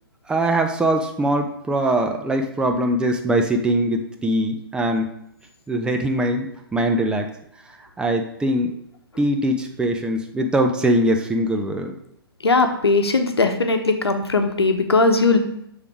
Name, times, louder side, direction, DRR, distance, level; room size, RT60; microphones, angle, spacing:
voice 1, 0.3-5.1 5.7-6.5 6.7-7.3 8.0-8.7 9.2-12.0, right 1 dB, 5° right, 3 dB, 0.4 m, -22 dB
voice 2, 12.4-15.4, left 3 dB, 90° left, 6 dB, 0.9 m, -19 dB
6.7 x 3.6 x 4.8 m, 0.76 s
hypercardioid pair, 130°, 13 cm